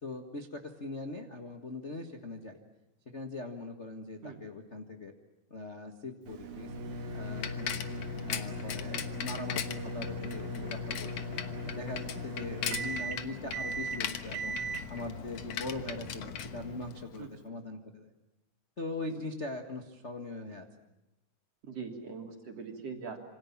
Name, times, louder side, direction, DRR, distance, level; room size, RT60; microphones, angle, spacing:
voice 1, 0.0-2.6 3.0-5.1 5.5-6.7 7.1-7.8 8.3-11.2 11.6-14.5 14.9-18.1 18.8-20.7, left 2 dB, 85° left, 3 dB, 0.6 m, -41 dB
sound 1, 6.3-16.6, right 1 dB, 70° right, 3.7 m, -39 dB
Bicycle, 6.4-17.3, left 8 dB, 60° left, 1.8 m, -40 dB
voice 2, 21.6-23.2, right 5 dB, 45° right, 2 dB, 4.1 m, -41 dB
27.0 x 26.0 x 7.3 m, 0.94 s
omnidirectional pair, 4.3 m